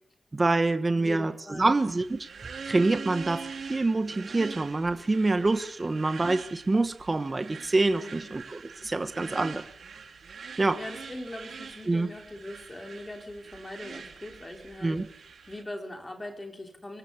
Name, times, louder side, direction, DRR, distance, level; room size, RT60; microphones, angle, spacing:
voice 1, 0.3-1.3 1.6-2.3 2.6-9.6 10.6-10.8 11.9-12.1 14.8-15.0, right 2 dB, 25° right, 10 dB, 1.2 m, -26 dB
voice 2, 1.0-1.7 7.9-8.3 9.2-9.5 10.7-15.2 15.5-17.0, left 1 dB, 20° left, 3 dB, 4.4 m, -41 dB
sound 1, 1.8-15.6, right 5 dB, 85° right, 4.0 m, -43 dB
25.0 x 23.0 x 7.1 m, 0.68 s
wide cardioid pair, 180°, 0 cm